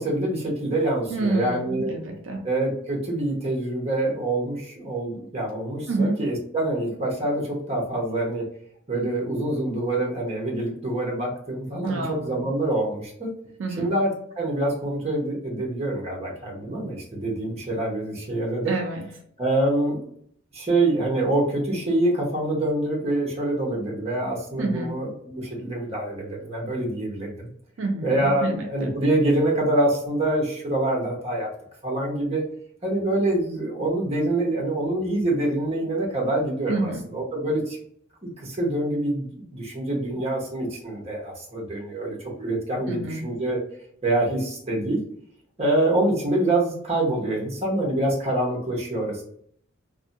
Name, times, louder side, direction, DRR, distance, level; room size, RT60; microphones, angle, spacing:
voice 1, 0.0-2.0 2.4-8.5 8.9-13.3 13.7-18.7 19.4-20.0 20.5-27.5 28.0-31.5 31.8-32.4 32.8-37.8 38.2-43.6 44.0-45.0 45.6-49.2, right 1 dB, 35° right, -2 dB, 0.8 m, -25 dB
voice 2, 1.1-2.4 5.9-6.2 11.8-12.5 13.6-13.9 18.7-19.0 24.6-24.9 27.8-28.9 36.7-37.0 42.9-43.3, right 2 dB, 80° right, 2 dB, 0.4 m, -28 dB
2.5 x 2.1 x 2.6 m, 0.66 s
head